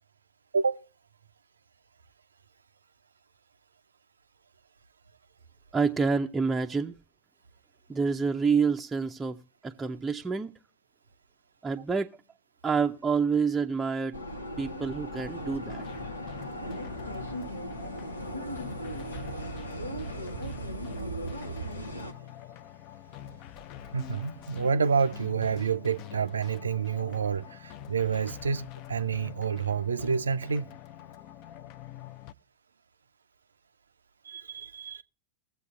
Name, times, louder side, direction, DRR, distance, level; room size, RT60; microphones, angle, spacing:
voice 1, 5.7-6.9 7.9-9.4 9.6-10.5 11.6-12.1 12.6-14.2 14.6-15.8, right 5 dB, 10° right, 0.5 m, -27 dB
sound 1, 14.1-22.1, right 1 dB, 85° left, 0.8 m, -37 dB
sound 2, 15.7-32.3, left 12 dB, 40° left, 0.4 m, -46 dB
voice 2, 23.9-30.7 34.3-35.0, right 6 dB, 70° right, 0.4 m, -28 dB
20.5 x 7.6 x 2.3 m
figure-of-eight pair, 90°, 0 cm